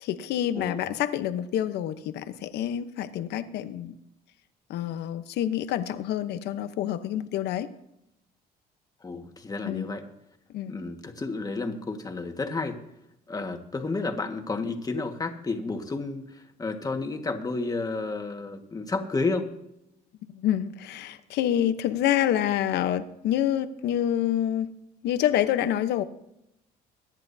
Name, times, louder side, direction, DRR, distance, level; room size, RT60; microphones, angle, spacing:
voice 1, 0.0-4.0 4.7-7.7 9.6-9.8 10.5-10.8 20.3-24.7 25.0-26.0, left 11 dB, 80° left, 11 dB, 1.0 m, -27 dB
voice 2, 9.0-10.0 10.7-12.8 13.3-19.5, left 3 dB, 20° left, 5 dB, 1.7 m, -31 dB
22.5 x 10.5 x 2.8 m, 0.83 s
cardioid pair, 110°, 17 cm